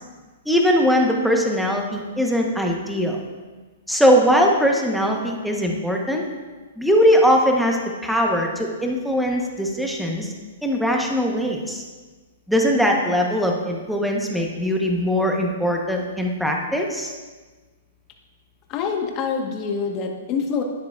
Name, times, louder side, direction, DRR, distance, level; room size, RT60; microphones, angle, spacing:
voice 1, 0.5-3.2 3.9-6.2 6.8-10.3 10.6-11.8 12.5-17.1, equal, ahead, 0 dB, 1.0 m, -20 dB
voice 2, 18.7-20.6, left 6 dB, 30° left, 2 dB, 1.2 m, -25 dB
11.5 x 9.4 x 2.4 m, 1.3 s
hypercardioid pair, 155°, 0 cm